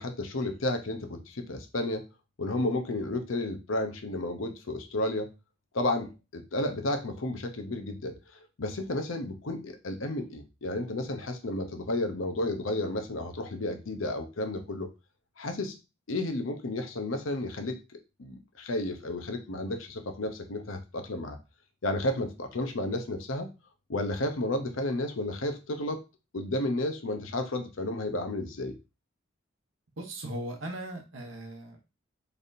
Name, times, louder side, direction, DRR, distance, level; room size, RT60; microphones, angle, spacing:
voice 1, 0.0-2.0 2.4-5.3 5.7-8.2 8.6-14.9 15.4-15.8 16.1-17.8 18.2-21.4 21.8-23.5 23.9-26.0 26.3-28.8, left 1 dB, 90° left, 6 dB, 0.8 m, -32 dB
voice 2, 30.0-31.9, right 1 dB, 75° right, 2 dB, 0.9 m, -38 dB
4.1 x 3.4 x 2.7 m, 0.27 s
head